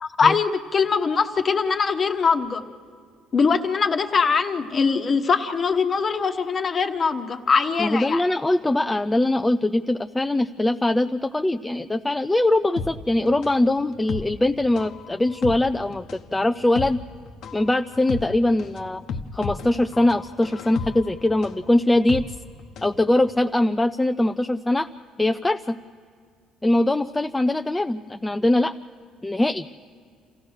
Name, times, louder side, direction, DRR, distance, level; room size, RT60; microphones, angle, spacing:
voice 1, 0.0-2.6 3.3-8.2, left 5 dB, 35° left, 6 dB, 1.1 m, -22 dB
voice 2, 7.8-17.0 17.5-19.0 19.3-22.2 22.8-24.9 25.2-25.8 26.6-28.7 29.2-29.8, left 1 dB, 10° left, 8 dB, 0.4 m, -22 dB
sound 1, 12.8-23.0 23.3-23.4, left 5 dB, 65° left, 0.9 m, -34 dB
28.0 x 15.0 x 6.4 m, 2.1 s
cardioid pair, 105°, 0 cm